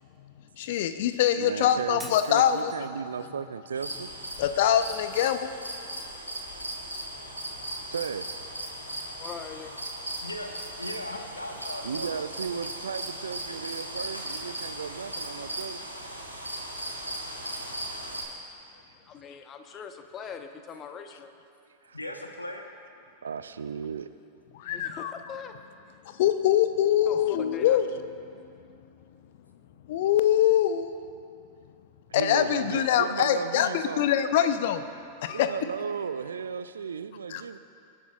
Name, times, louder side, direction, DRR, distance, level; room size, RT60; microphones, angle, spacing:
voice 1, 0.6-2.7 4.4-5.5 24.5-25.1 26.2-27.9 29.9-30.9 32.1-34.8 35.2-35.5 37.3-37.4, left 10 dB, 55° left, 10 dB, 0.7 m, -24 dB
voice 2, 1.4-4.1 7.9-8.3 11.8-15.9 18.0-18.1 18.8-18.9 21.8-22.0 23.2-24.1 32.1-34.1 35.3-37.6, right 6 dB, 70° right, 12 dB, 0.5 m, -35 dB
Shatter, 2.0-3.0, right 2 dB, 5° right, 1.2 m, -45 dB
sound 1, 3.7-18.2, right 1 dB, 90° right, 2.6 m, -37 dB
voice 3, 9.2-9.7 19.1-21.3 24.7-25.5 25.9-26.0 27.1-27.8, left 7 dB, 30° left, 6 dB, 1.1 m, -42 dB
voice 4, 10.8-12.2 13.5-13.6 21.9-22.7, left 1 dB, 85° left, 3 dB, 1.3 m, -38 dB
27.0 x 12.0 x 2.5 m, 2.5 s
figure-of-eight pair, 90°, 0 cm